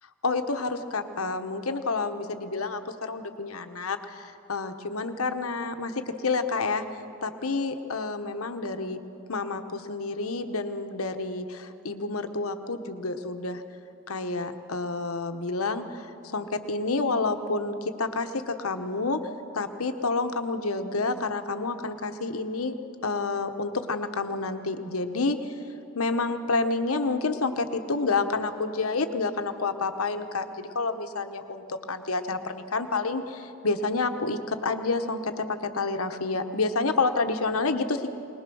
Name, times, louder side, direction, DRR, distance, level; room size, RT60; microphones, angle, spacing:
voice 1, 0.2-6.9 7.2-9.0 9.3-13.6 14.1-19.3 19.5-22.7 23.0-25.5 25.9-38.1, left 3 dB, 85° left, 7 dB, 1.1 m, -29 dB
21.5 x 20.0 x 6.3 m, 2.8 s
head